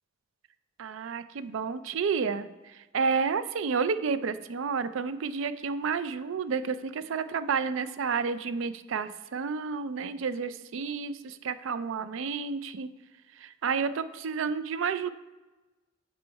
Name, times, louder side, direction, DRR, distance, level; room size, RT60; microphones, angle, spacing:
voice 1, 0.8-12.9 13.4-15.1, right 5 dB, 65° right, 13 dB, 0.4 m, -30 dB
8.1 x 4.3 x 4.6 m, 1.2 s
head